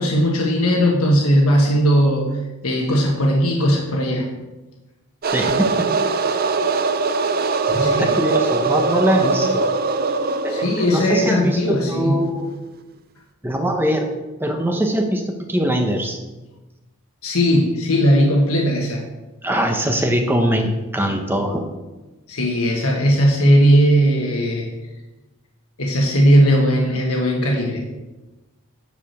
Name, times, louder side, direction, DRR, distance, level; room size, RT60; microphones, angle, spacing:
voice 1, 0.0-2.3 2.6-4.3 7.7-8.1 10.5-12.3 17.2-19.0 22.3-24.7 25.8-27.8, equal, 80° left, 0 dB, 1.5 m, -18 dB
sound 1, 5.2-11.9, right 4 dB, 45° right, 0.5 m, -21 dB
voice 2, 5.3-5.9 7.7-9.7 10.4-12.5 13.4-14.1 14.4-16.2 19.4-21.6, equal, 10° right, 3 dB, 0.8 m, -22 dB
10.5 x 4.9 x 6.5 m, 1.1 s
head